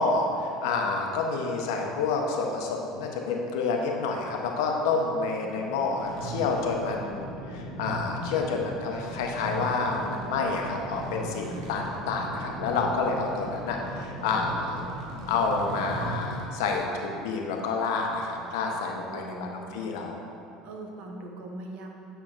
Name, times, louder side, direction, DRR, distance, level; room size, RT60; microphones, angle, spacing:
voice 1, 0.0-14.8 15.3-20.2, left 4 dB, 80° left, 1 dB, 0.8 m, -29 dB
voice 2, 5.2-5.9 11.5-11.7 19.1-20.0 20.6-21.9, right 2 dB, 60° right, 1 dB, 0.9 m, -42 dB
sound 1, 6.0-16.4, right 1 dB, 90° right, 1.1 m, -38 dB
8.7 x 5.6 x 2.4 m, 2.6 s
hypercardioid pair, 80°, 2 cm